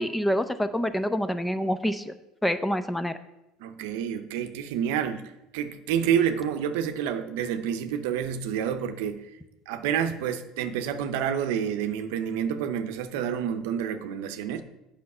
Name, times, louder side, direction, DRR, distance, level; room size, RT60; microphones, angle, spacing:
voice 1, 0.0-2.1 2.4-3.2, equal, 5° left, 11 dB, 0.6 m, -27 dB
voice 2, 3.6-9.2 9.7-14.6, right 8 dB, 80° right, 8 dB, 0.7 m, -28 dB
8.4 x 5.7 x 5.5 m, 0.93 s
supercardioid pair, 95°, 0 cm